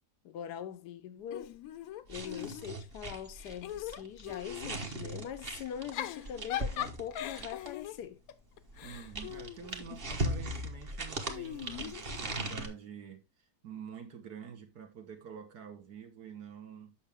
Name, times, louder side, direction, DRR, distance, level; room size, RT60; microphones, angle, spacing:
voice 1, 0.2-1.6 2.1-8.2, left 9 dB, 90° left, 1.2 m, -42 dB
Giggle / Chuckle chortle, 1.3-2.9 3.3-4.8 5.7-10.2 11.3-12.7, left 12 dB, 70° left, 1.0 m, -41 dB
sound 1, 2.1-7.8 8.7-12.7, right 1 dB, 40° right, 1.4 m, -39 dB
voice 2, 8.8-17.0, right 7 dB, 75° right, 1.8 m, -47 dB
8.1 x 5.9 x 3.5 m
omnidirectional pair, 1.7 m